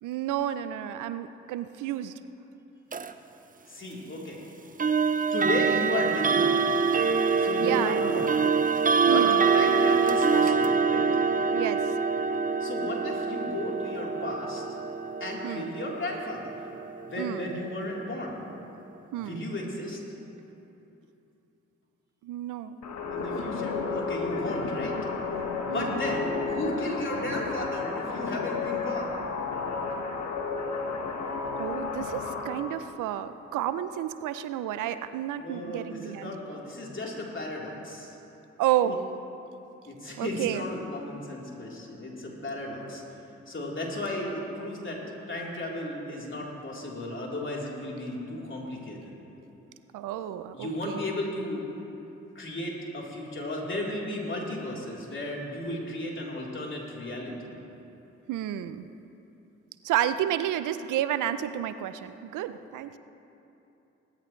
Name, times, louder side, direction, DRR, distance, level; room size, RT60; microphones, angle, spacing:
voice 1, 0.0-2.1 7.6-8.2 9.1-9.5 11.5-12.0 15.4-15.7 17.2-17.5 19.1-19.4 22.2-22.8 25.7-26.0 31.6-36.3 38.6-39.0 40.2-40.6 49.9-51.0 58.3-58.9 59.8-63.0, right 11 dB, 80° right, 12 dB, 0.5 m, -31 dB
sound 1, 2.9-3.1 4.8-17.6, right 5 dB, 25° right, 0.7 m, -25 dB
voice 2, 3.7-4.4 5.3-6.7 7.4-8.4 9.0-9.3 9.5-11.1 12.6-14.6 15.2-16.7 17.0-18.4 19.2-20.0 23.1-25.0 25.7-29.3 35.4-38.2 38.8-39.0 39.9-43.0 43.5-45.0 45.3-49.2 50.5-51.6 52.4-57.5, left 1 dB, 40° left, -3 dB, 3.6 m, -34 dB
sound 2, 22.8-32.6, left 4 dB, 65° left, 1.6 m, -32 dB
19.0 x 13.5 x 3.2 m, 2.9 s
supercardioid pair, 45°, 31 cm